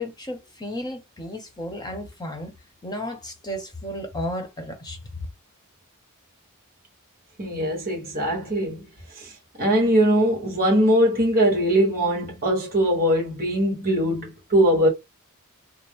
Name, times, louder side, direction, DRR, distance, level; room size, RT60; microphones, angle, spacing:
voice 1, 0.0-2.5 2.8-5.0, left 1 dB, 20° left, 1.1 m, -33 dB
voice 2, 7.4-8.9 9.2-9.3 9.6-14.9, equal, 45° right, 1.4 m, -21 dB
4.4 x 2.1 x 3.6 m
head